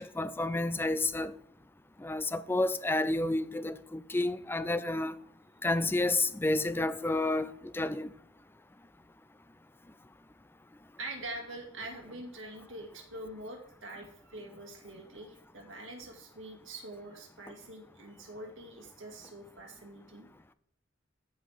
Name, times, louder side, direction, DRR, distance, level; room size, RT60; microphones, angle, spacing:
voice 1, 0.0-1.3 2.0-5.1 5.6-8.1, left 2 dB, 10° left, 0.4 m, -30 dB
voice 2, 11.0-20.3, right 2 dB, 80° right, 2.2 m, -44 dB
14.0 x 5.2 x 3.5 m
head